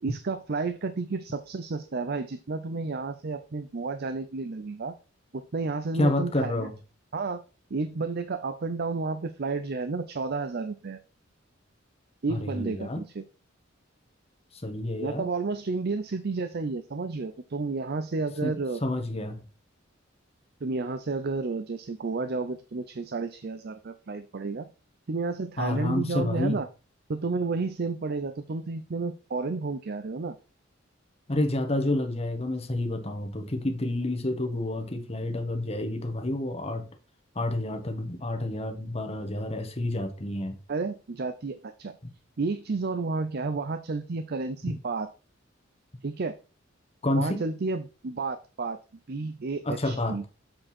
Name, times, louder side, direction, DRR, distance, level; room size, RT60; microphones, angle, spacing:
voice 1, 0.0-4.9 5.3-6.7 7.1-7.4 7.7-11.0 12.2-13.2 15.0-18.8 20.6-24.7 25.1-26.7 27.1-30.3 40.7-41.9 42.4-45.1 46.0-46.4 47.1-48.8 49.1-50.3, right 3 dB, 55° right, 0.5 m, -31 dB
voice 2, 5.9-6.8 12.3-13.0 14.5-15.2 18.4-19.4 25.6-26.6 31.3-36.9 37.3-40.6 44.7-44.8 47.0-47.4 49.6-50.2, left 1 dB, 30° left, 1.3 m, -29 dB
7.7 x 4.6 x 4.3 m
head